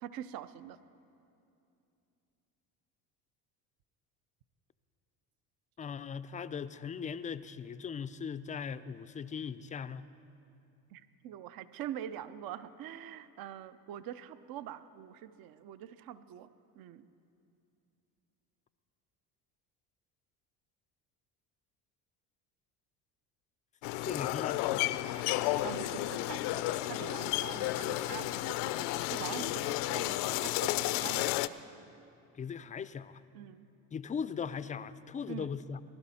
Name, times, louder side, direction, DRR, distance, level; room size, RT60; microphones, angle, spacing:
voice 1, 0.0-0.8 10.9-16.5 16.8-17.1 25.6-31.6 33.3-33.7 35.3-35.5, right 11 dB, 55° right, 14 dB, 0.6 m, -44 dB
voice 2, 5.8-10.0 23.9-24.6 32.3-33.2 33.9-35.8, left 6 dB, 20° left, 14 dB, 0.4 m, -39 dB
sound 1, 23.8-31.5, left 16 dB, 75° left, 0.6 m, -32 dB
19.5 x 11.5 x 4.2 m, 2.7 s
supercardioid pair, 80°, 43 cm